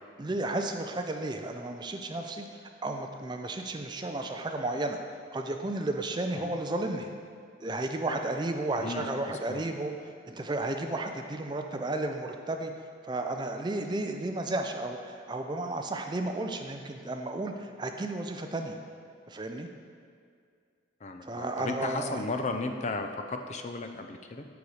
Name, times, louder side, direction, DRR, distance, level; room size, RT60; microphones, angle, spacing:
voice 1, 0.2-2.4 2.8-5.0 5.3-7.1 7.6-9.9 10.3-12.7 13.1-18.8 19.3-19.7 21.2-22.2, right 2 dB, 25° right, 5 dB, 0.4 m, -33 dB
voice 2, 8.8-9.6 21.0-24.4, left 3 dB, 35° left, 6 dB, 0.5 m, -35 dB
6.8 x 6.4 x 4.8 m, 2.2 s
head